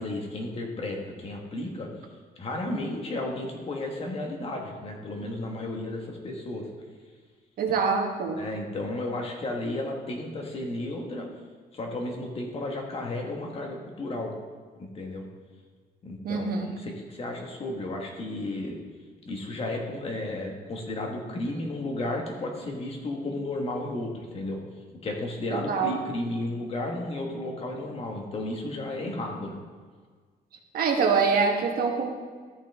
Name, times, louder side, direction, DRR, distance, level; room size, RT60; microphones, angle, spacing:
voice 1, 0.0-1.9 2.4-6.7 8.4-11.3 11.7-14.3 14.8-15.3 16.0-18.8 19.2-24.6 25.0-29.6, left 2 dB, 35° left, 1 dB, 1.4 m, -33 dB
voice 2, 7.6-8.4 16.2-16.7 25.5-25.9 30.7-32.1, right 5 dB, 65° right, 3 dB, 1.2 m, -25 dB
13.0 x 5.7 x 3.5 m, 1.6 s
cardioid pair, 160°, 17 cm